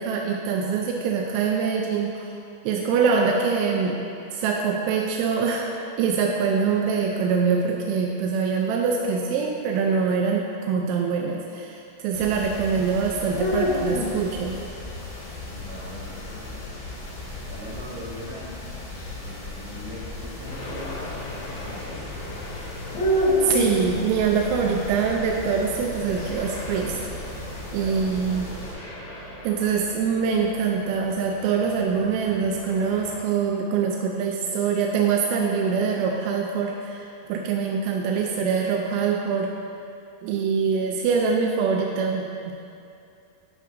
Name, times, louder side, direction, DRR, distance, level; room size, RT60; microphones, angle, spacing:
voice 1, 0.0-2.3 2.6-4.1 4.3-5.7 6.0-14.6 23.4-27.0 27.7-28.5 29.4-39.5 40.2-42.5, right 5 dB, 85° right, 0 dB, 2.6 m, -24 dB
sound 1, 12.1-28.7, left 1 dB, 60° left, 3.1 m, -31 dB
voice 2, 15.3-17.1 17.5-18.6 19.1-22.2 27.8-28.5, equal, 65° right, -8 dB, 3.0 m, -42 dB
sound 2, 20.5-33.2, equal, 85° left, 4.4 m, -39 dB
11.0 x 5.8 x 2.6 m, 2.5 s
omnidirectional pair, 5.9 m